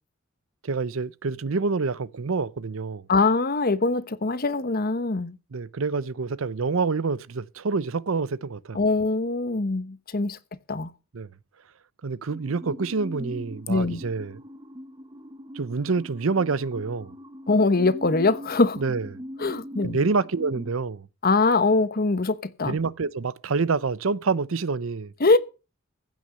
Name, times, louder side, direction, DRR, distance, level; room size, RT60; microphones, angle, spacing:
voice 1, 0.6-3.0 5.5-8.8 11.1-11.3 12.0-14.4 15.5-17.1 18.8-19.1 19.8-21.1 22.6-25.1, right 4 dB, 70° right, 0.7 m, -27 dB
voice 2, 3.1-5.4 8.7-10.4 10.7-10.9 13.7-14.0 17.5-18.8 19.4-20.0 21.2-22.8 25.2-25.4, left 3 dB, 45° left, 1.0 m, -22 dB
sound 1, 12.3-20.7, equal, 20° right, 1.0 m, -41 dB
15.5 x 6.2 x 7.6 m
head